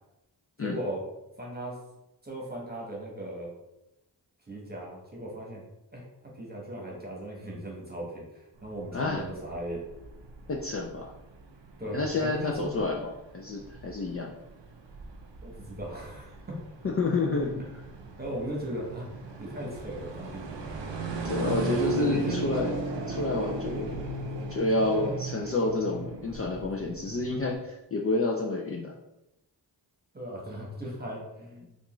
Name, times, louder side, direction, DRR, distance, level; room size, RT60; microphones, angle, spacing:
voice 1, 0.6-1.0 1.4-1.8 2.2-3.5 4.5-5.6 5.9-9.8 11.8-12.7 15.4-16.6 17.6-17.9 18.2-19.1 19.4-20.5 22.0-22.4 24.8-25.2 30.1-31.8, right 1 dB, 20° right, -2 dB, 1.1 m, -37 dB
sound 1, 8.6-27.6, right 3 dB, 80° right, 0.6 m, -37 dB
voice 2, 8.9-9.2 10.5-11.1 11.9-14.3 16.8-17.8 21.2-22.7 23.1-24.0 24.5-28.9, left 3 dB, 35° left, -1 dB, 0.4 m, -29 dB
3.5 x 2.5 x 3.0 m, 0.93 s
cardioid pair, 55°, 42 cm